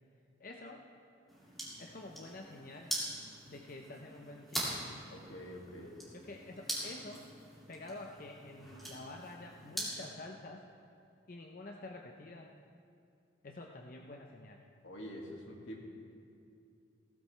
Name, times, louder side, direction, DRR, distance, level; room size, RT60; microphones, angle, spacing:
voice 1, 0.4-0.8 1.8-2.9 3.5-5.0 6.1-7.3 7.7-10.6 11.3-12.5 13.4-14.6, left 2 dB, 45° left, 2 dB, 0.6 m, -48 dB
sound 1, 1.3-10.1, right 1 dB, ahead, 2.4 m, -43 dB
voice 2, 5.1-6.0 14.8-15.8, equal, 80° left, -1 dB, 2.3 m, -46 dB
16.5 x 14.5 x 3.3 m, 2.5 s
head